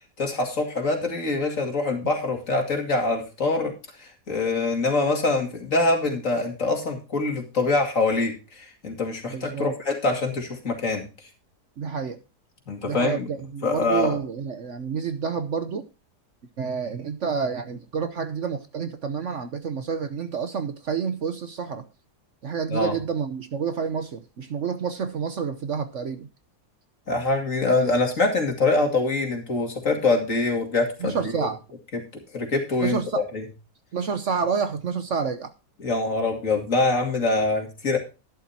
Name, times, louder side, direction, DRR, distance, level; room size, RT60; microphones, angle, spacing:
voice 1, 0.2-3.7 4.0-11.1 12.7-13.3 13.6-14.2 22.7-22.9 27.1-31.5 32.3-33.4 35.8-38.0, left 3 dB, 50° left, 2.8 m, -24 dB
voice 2, 9.3-9.7 11.8-12.2 12.8-15.9 16.6-21.9 22.4-26.3 31.0-31.6 32.8-33.2 33.9-35.5, right 6 dB, 55° right, 1.1 m, -29 dB
11.5 x 11.5 x 2.8 m
omnidirectional pair, 1.7 m